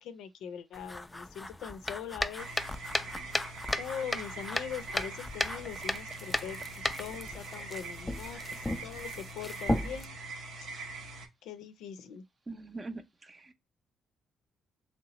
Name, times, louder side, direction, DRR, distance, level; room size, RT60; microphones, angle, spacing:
voice 1, 0.0-2.5 3.8-8.4 8.8-10.2 11.4-12.2, left 8 dB, 90° left, 0.5 m, -42 dB
sound 1, 0.7-10.1, left 1 dB, 15° left, 0.3 m, -35 dB
sound 2, 2.4-11.3, right 3 dB, 80° right, 0.8 m, -43 dB
voice 2, 12.5-13.5, right 3 dB, 30° right, 0.6 m, -43 dB
3.1 x 2.9 x 2.9 m
cardioid pair, 90°, 0 cm